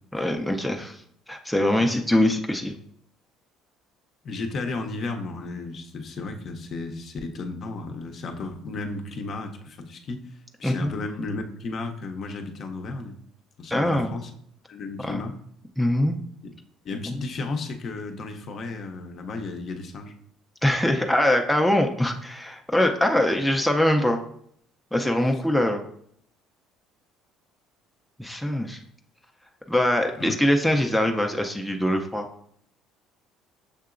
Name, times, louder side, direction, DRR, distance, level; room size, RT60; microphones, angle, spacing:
voice 1, 0.1-1.0 1.3-2.8 10.6-10.9 13.7-14.1 15.0-15.2 15.8-16.2 17.1-17.2 20.6-24.2 24.9-25.8 28.2-28.8 29.7-32.3, left 1 dB, ahead, 2 dB, 0.4 m, -23 dB
voice 2, 4.2-10.2 10.6-13.2 13.6-14.3 14.7-15.3 16.8-20.1 30.2-30.3, left 3 dB, 50° left, 4 dB, 0.6 m, -33 dB
6.5 x 2.8 x 2.4 m, 0.66 s
cardioid pair, 115°, 0 cm